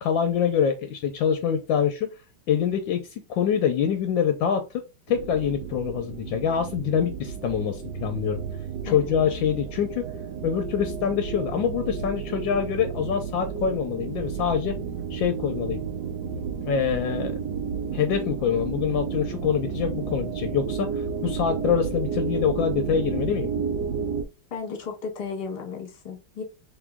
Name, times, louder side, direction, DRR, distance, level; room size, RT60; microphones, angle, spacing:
voice 1, 0.0-2.1 2.5-4.8 5.1-8.4 8.8-10.1 10.4-14.8 15.1-15.8 16.7-17.4 17.9-23.5, left 8 dB, 75° left, 7 dB, 1.2 m, -25 dB
sound 1, 5.1-24.2, right 6 dB, 65° right, 1.2 m, -32 dB
voice 2, 24.5-26.4, left 5 dB, 35° left, 1 dB, 1.2 m, -34 dB
3.6 x 3.0 x 3.5 m, 0.28 s
omnidirectional pair, 2.2 m